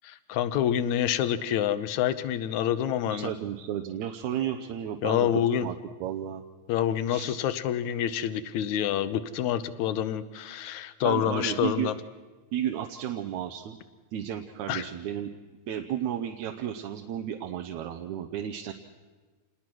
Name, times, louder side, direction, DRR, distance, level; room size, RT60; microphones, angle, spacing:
voice 1, 0.0-3.3 5.0-5.7 6.7-12.0 14.7-14.9, left 10 dB, 80° left, 13 dB, 2.2 m, -27 dB
voice 2, 3.1-5.3 5.6-6.4 7.1-7.4 11.0-11.9 12.5-13.8 14.1-15.3 15.7-18.7, right 10 dB, 80° right, 4 dB, 2.2 m, -33 dB
27.0 x 20.5 x 6.2 m, 1.4 s
omnidirectional pair, 3.3 m